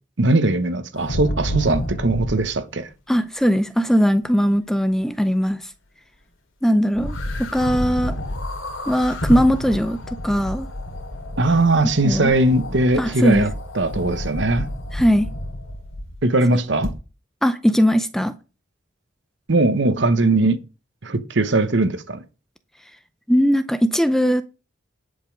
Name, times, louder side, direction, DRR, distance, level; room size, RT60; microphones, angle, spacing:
voice 1, 0.2-2.9 11.4-13.5 13.8-14.7 16.2-16.9 19.5-20.6 21.0-22.2, right 2 dB, 60° right, 1.0 m, -19 dB
sound 1, 0.9-2.5 6.9-16.2 16.8-16.9, left 1 dB, 80° left, 2.4 m, -30 dB
voice 2, 3.1-5.6 6.6-8.1 8.9-10.0 10.2-10.7 12.0-12.4 13.0-13.5 14.9-15.3 16.5-16.6 17.4-18.3 23.3-24.4, equal, ahead, 0.5 m, -19 dB
10.5 x 5.3 x 5.3 m
head